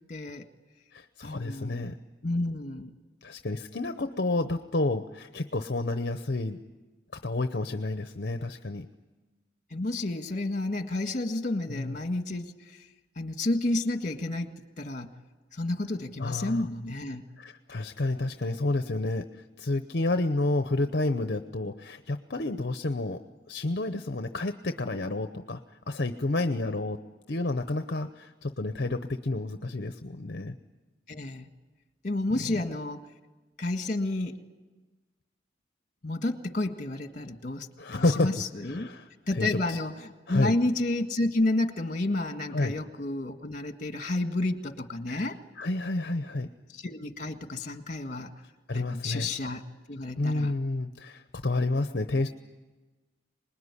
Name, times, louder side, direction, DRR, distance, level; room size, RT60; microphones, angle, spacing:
voice 1, 0.1-0.5 1.2-1.9 2.2-2.9 9.7-12.9 13.1-15.1 15.5-17.2 31.1-31.5 32.0-33.1 33.6-34.4 36.0-38.9 39.3-45.4 46.7-48.3 48.7-49.6 49.9-50.5, left 2 dB, 45° left, 6 dB, 1.8 m, -31 dB
voice 2, 0.9-1.9 3.2-6.6 7.2-8.9 11.7-12.0 16.2-16.6 17.4-23.2 23.5-25.6 25.9-27.0 27.3-30.5 32.5-32.6 37.8-38.4 38.7-39.1 39.3-39.8 40.3-40.5 42.5-42.8 45.1-45.3 45.6-46.5 48.7-49.3 50.2-52.3, left 2 dB, 60° left, 8 dB, 0.8 m, -30 dB
26.5 x 20.5 x 9.8 m, 1.3 s
head